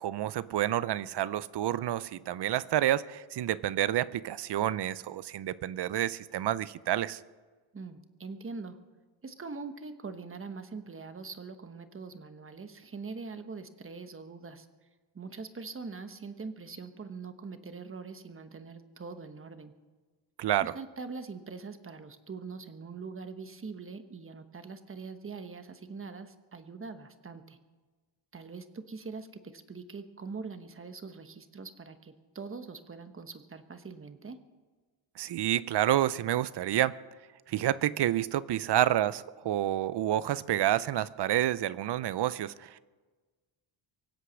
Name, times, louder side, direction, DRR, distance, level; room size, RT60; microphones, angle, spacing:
voice 1, 0.0-7.2 20.4-20.7 35.2-36.9 37.5-42.8, right 12 dB, 55° right, 18 dB, 0.6 m, -29 dB
voice 2, 7.7-8.8 9.2-14.7 15.1-19.7 20.6-27.6 28.3-34.4, right 4 dB, 25° right, 9 dB, 1.1 m, -43 dB
24.0 x 8.1 x 6.3 m, 1.3 s
cardioid pair, 115°, 48 cm